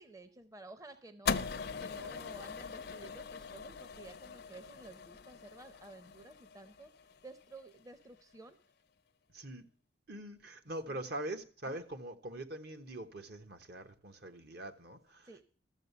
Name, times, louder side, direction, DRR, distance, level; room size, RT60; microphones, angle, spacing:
voice 1, 0.0-1.4 1.8-6.9 7.2-8.6 10.9-11.1 11.6-11.8 15.3-15.4, right 2 dB, 20° right, 0.6 m, -53 dB
sound 1, 1.3-7.6, left 5 dB, 60° left, 0.5 m, -41 dB
voice 2, 9.3-9.6 10.1-15.4, right 1 dB, 60° right, 1.1 m, -43 dB
13.0 x 7.3 x 6.9 m
head